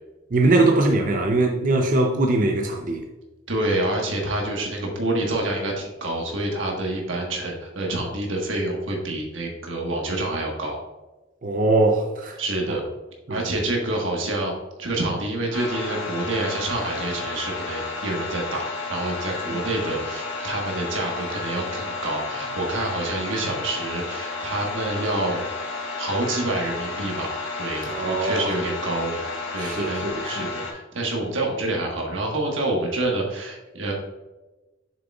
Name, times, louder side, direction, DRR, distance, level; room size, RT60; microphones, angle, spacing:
voice 1, 0.3-3.0 11.4-12.4 12.7-12.8 13.3-13.6 27.8-28.5 29.6-30.5, right 2 dB, 45° right, 0.5 m, -22 dB
voice 2, 3.5-10.8 12.4-12.8 13.3-29.2 29.5-33.9, right 2 dB, 90° right, 1.4 m, -27 dB
sound 1, 15.5-30.7, left 3 dB, 80° left, 1.5 m, -32 dB
7.4 x 6.7 x 2.4 m
head